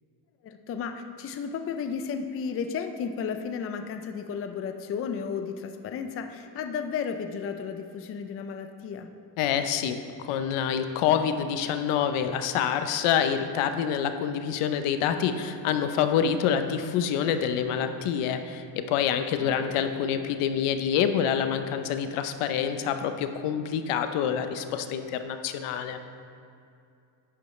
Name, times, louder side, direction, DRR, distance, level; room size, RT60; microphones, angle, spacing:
voice 1, 0.4-9.1 19.4-20.0, left 6 dB, 30° left, 7 dB, 0.4 m, -33 dB
voice 2, 9.4-26.0, left 8 dB, 85° left, 8 dB, 0.8 m, -27 dB
11.0 x 8.9 x 3.2 m, 2.5 s
cardioid pair, 150°, 49 cm